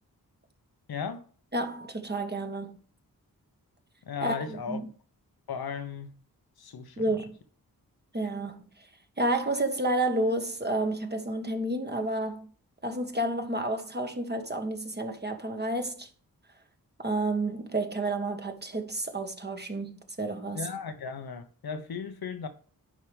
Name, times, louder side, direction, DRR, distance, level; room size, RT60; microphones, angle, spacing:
voice 1, 0.9-1.3 4.0-4.8 5.5-6.1 6.6-7.1 20.5-22.5, left 6 dB, 80° left, 1.2 m, -36 dB
voice 2, 1.5-2.8 4.2-4.9 7.0-7.4 8.1-8.9 9.2-12.5 12.8-16.1 17.0-20.7, right 1 dB, 25° right, 1.6 m, -30 dB
10.5 x 4.8 x 3.5 m
cardioid pair, 60°, 36 cm